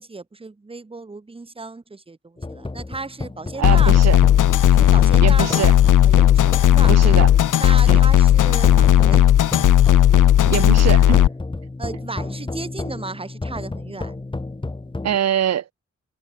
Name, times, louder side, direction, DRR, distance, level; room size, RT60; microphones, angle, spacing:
voice 1, 0.0-4.0 4.7-5.7 6.0-6.9 7.6-9.2 11.8-14.2, right 3 dB, 20° right, 0.9 m, -34 dB
sound 1, 2.4-15.2, left 2 dB, 15° left, 1.3 m, -32 dB
sound 2, 3.6-11.3, left 11 dB, 85° left, 0.6 m, -14 dB
voice 2, 3.6-4.2 5.2-5.8 6.9-7.3 7.9-8.0 10.5-11.2 15.0-15.6, right 10 dB, 60° right, 0.5 m, -23 dB
wide cardioid pair, 175°, 30 cm